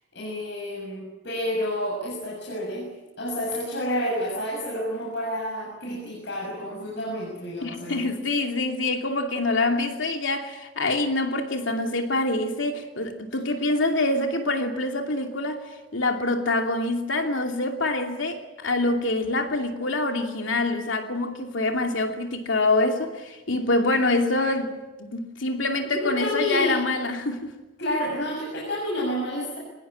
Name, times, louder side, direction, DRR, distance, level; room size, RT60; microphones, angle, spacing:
voice 1, 0.1-2.9 3.2-8.0 25.9-26.8 27.8-29.6, left 1 dB, 60° left, 7.0 m, -29 dB
voice 2, 7.6-15.6 15.9-27.5, left 2 dB, 80° left, 2.7 m, -25 dB
23.0 x 21.0 x 8.8 m
head